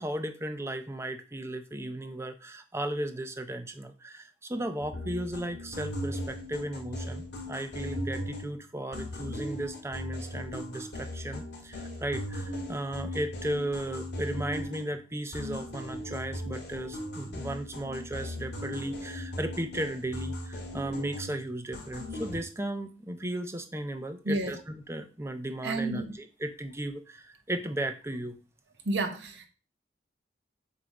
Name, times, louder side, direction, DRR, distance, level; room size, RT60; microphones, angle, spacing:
voice 1, 0.0-28.4, right 1 dB, 15° right, 0.6 m, -35 dB
sound 1, 4.8-8.6 8.9-15.1 15.3-21.5 21.7-22.4, left 1 dB, 70° left, 2.2 m, -38 dB
voice 2, 25.6-26.1 28.8-29.5, right 2 dB, 85° right, 1.0 m, -30 dB
7.6 x 2.8 x 4.9 m
head